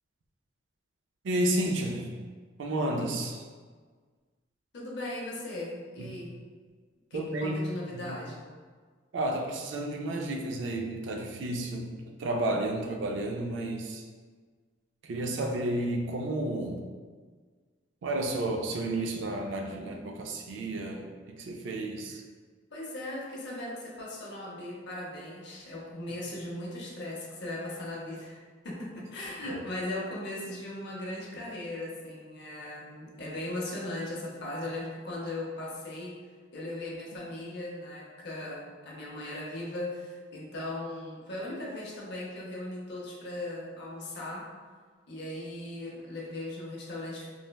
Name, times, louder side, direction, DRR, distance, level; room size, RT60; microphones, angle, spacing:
voice 1, 1.2-2.1 2.6-3.4 6.0-6.1 7.1-7.6 7.9-8.2 9.1-14.0 15.0-16.8 18.0-22.2 29.5-29.6, right 1 dB, 75° right, 2 dB, 0.3 m, -32 dB
voice 2, 4.7-6.3 7.1-8.4 22.1-22.2 22.7-36.1 36.5-44.5 45.1-47.3, left 1 dB, 60° left, -3 dB, 0.6 m, -38 dB
3.1 x 2.1 x 2.2 m, 1.5 s
head